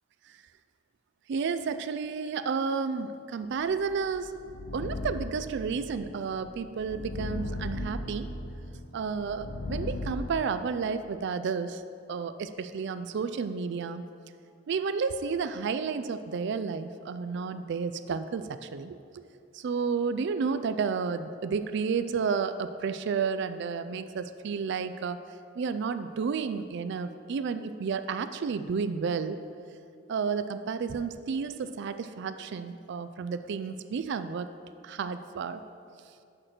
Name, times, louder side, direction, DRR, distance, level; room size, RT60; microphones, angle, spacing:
voice 1, 1.3-4.4 4.7-8.3 8.9-11.8 12.1-14.0 14.7-19.2 19.5-25.2 25.6-29.4 30.1-34.5 34.8-35.6, right 5 dB, 60° right, 11 dB, 0.4 m, -31 dB
sound 1, 3.8-10.3, left 2 dB, 55° left, 0.5 m, -37 dB
6.5 x 5.8 x 6.5 m, 2.4 s
head